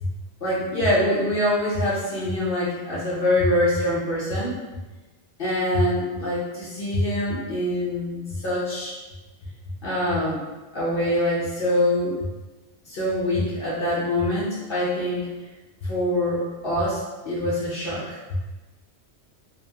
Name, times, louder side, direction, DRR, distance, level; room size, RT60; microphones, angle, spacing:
voice 1, 0.4-4.6 5.4-9.0 9.8-10.4 10.7-12.2 12.8-15.3 15.8-18.2, left 1 dB, 55° left, -7 dB, 0.8 m, -24 dB
2.7 x 2.2 x 2.7 m, 1.2 s
omnidirectional pair, 1.2 m